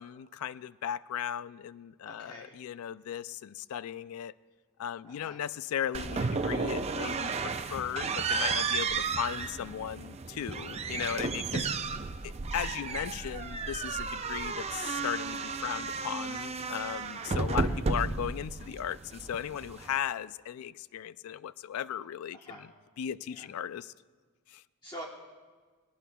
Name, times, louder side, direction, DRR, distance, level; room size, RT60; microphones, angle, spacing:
voice 1, 0.0-4.3 4.8-11.7 12.2-22.7 23.0-23.9 24.5-24.6, left 9 dB, 75° left, 18 dB, 0.3 m, -37 dB
voice 2, 2.0-2.6 5.0-5.4 10.8-11.1 17.6-17.8 22.3-22.7 23.3-23.5 24.8-25.0, equal, 20° left, -2 dB, 1.1 m, -46 dB
sound 1, 5.9-20.0, right 4 dB, 30° right, 0.4 m, -33 dB
19.5 x 18.0 x 2.3 m, 1.5 s
head